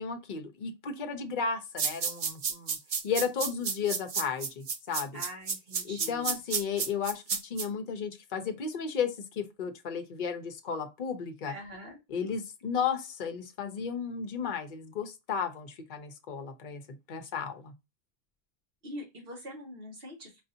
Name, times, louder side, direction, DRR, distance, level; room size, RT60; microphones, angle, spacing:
voice 1, 0.0-2.8 3.0-5.2 5.8-11.5 12.1-16.8 17.1-17.7, left 6 dB, 50° left, 0.8 m, -34 dB
sound 1, 1.8-7.7, right 5 dB, 45° right, 0.5 m, -31 dB
voice 2, 5.1-6.4 11.5-12.0 18.8-20.4, equal, 65° right, 1.5 m, -44 dB
4.8 x 2.7 x 2.6 m
omnidirectional pair, 1.1 m